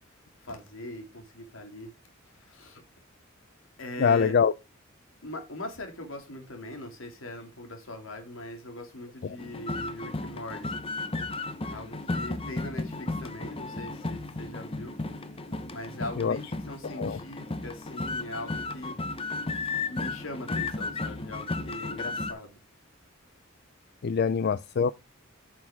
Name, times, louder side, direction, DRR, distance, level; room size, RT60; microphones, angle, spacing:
voice 1, 0.4-1.9 2.3-2.8 3.8-4.4 5.2-10.7 11.7-15.0 15.7-19.0 19.6-22.6, left 1 dB, 80° left, 2.7 m, -41 dB
voice 2, 4.0-4.5 9.2-9.4 16.2-16.4 16.8-17.2 24.0-24.9, left 6 dB, 55° left, 0.4 m, -24 dB
sound 1, 9.4-22.3, left 3 dB, 30° left, 0.9 m, -34 dB
9.4 x 6.0 x 3.6 m
head